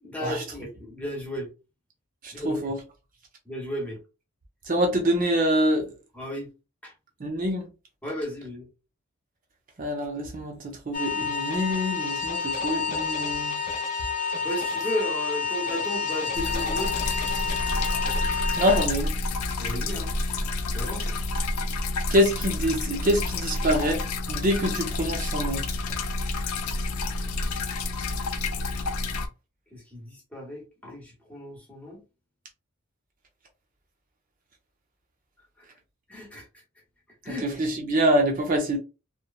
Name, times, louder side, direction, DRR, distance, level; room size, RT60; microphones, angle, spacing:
voice 1, 0.0-1.5 2.3-2.7 3.5-4.0 6.1-6.5 6.8-6.9 8.0-8.7 14.4-17.0 19.6-20.1 20.7-21.1 29.7-32.0 35.6-35.7 36.1-36.5 37.2-37.4, equal, 5° left, 0.8 m, -34 dB
voice 2, 2.2-2.8 4.7-5.9 7.2-7.7 9.8-13.6 18.6-19.1 22.1-24.0 24.3-25.6 37.3-38.8, equal, 40° right, 0.5 m, -25 dB
sound 1, 10.9-18.9, left 5 dB, 35° left, 0.6 m, -29 dB
sound 2, 16.3-29.3, left 2 dB, 80° left, 0.4 m, -29 dB
2.8 x 2.1 x 2.3 m
head